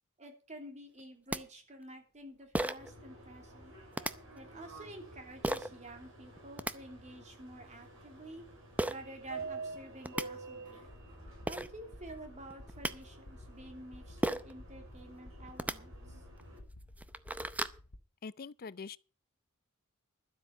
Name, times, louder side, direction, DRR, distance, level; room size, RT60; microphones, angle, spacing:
voice 1, 0.2-3.7 4.3-8.4 8.9-10.9 11.5-16.2, right 1 dB, 35° right, 2.9 m, -50 dB
sound 1, 1.0-1.1 1.3-1.4 2.5-2.9 3.9-4.1 5.4-5.7 6.4-6.7 8.8-9.0 9.7-9.8 10.0-10.3 11.1-11.2 11.5-11.7 12.5-12.9 14.2-14.5 15.5-15.8 16.4-16.5 16.9-17.8, right 1 dB, 5° right, 0.6 m, -34 dB
Subway metro underground, 2.8-16.6, right 3 dB, 70° right, 6.1 m, -50 dB
sound 2, 10.8-18.0, left 1 dB, 85° left, 1.3 m, -54 dB
voice 2, 18.2-19.0, left 5 dB, 45° left, 0.5 m, -43 dB
12.0 x 8.2 x 6.5 m
head